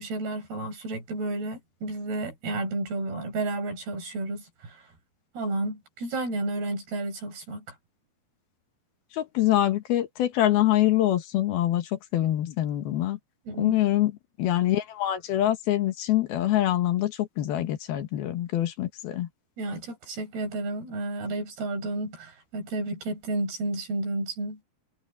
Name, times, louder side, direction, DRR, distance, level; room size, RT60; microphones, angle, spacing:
voice 1, 0.0-4.9 5.4-7.8 13.5-13.8 19.6-24.6, right 2 dB, 80° right, 8.9 m, -32 dB
voice 2, 9.1-13.2 13.6-14.1 14.4-19.3, left 13 dB, 75° left, 3.3 m, -25 dB
omnidirectional pair, 4.5 m